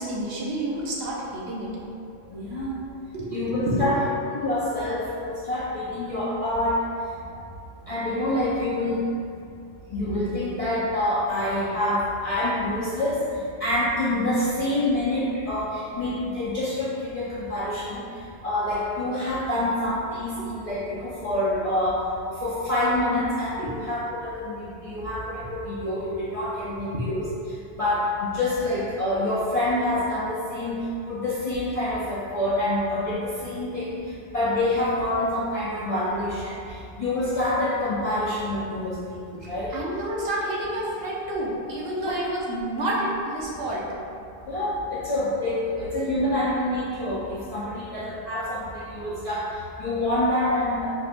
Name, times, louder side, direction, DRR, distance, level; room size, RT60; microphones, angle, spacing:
voice 1, 0.0-1.7 3.1-3.9 23.6-23.8 39.7-43.9, right 1 dB, 70° right, -4 dB, 0.8 m, -29 dB
voice 2, 2.3-2.7 3.3-4.0 4.3-6.8 7.9-9.1 9.9-13.2 13.6-18.1 18.4-22.0 22.4-27.3 27.8-34.0 34.3-39.7 42.0-42.2 44.5-50.9, left 1 dB, 55° left, -9 dB, 0.4 m, -27 dB
4.3 x 2.1 x 2.5 m, 2.5 s
omnidirectional pair, 1.1 m